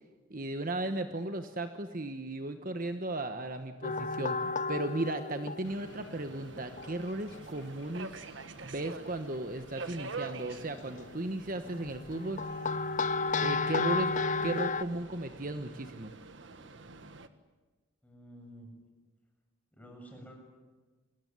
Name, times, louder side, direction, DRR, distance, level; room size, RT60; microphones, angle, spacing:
voice 1, 0.3-8.2 8.6-12.4 13.4-14.1 14.4-16.1, right 2 dB, 40° right, 8 dB, 1.2 m, -35 dB
sound 1, 3.8-6.1 6.5-7.0 9.2-9.3 10.4-11.0 11.7-14.8, left 4 dB, 35° left, 0.8 m, -32 dB
sound 2, 5.6-11.1, left 4 dB, 55° left, 5.0 m, -61 dB
Subway metro underground, 5.6-17.3, right 3 dB, 60° right, 1.5 m, -47 dB
voice 2, 18.0-18.7 19.7-20.4, equal, 5° left, 1 dB, 7.0 m, -50 dB
29.0 x 21.0 x 9.5 m, 1.3 s
head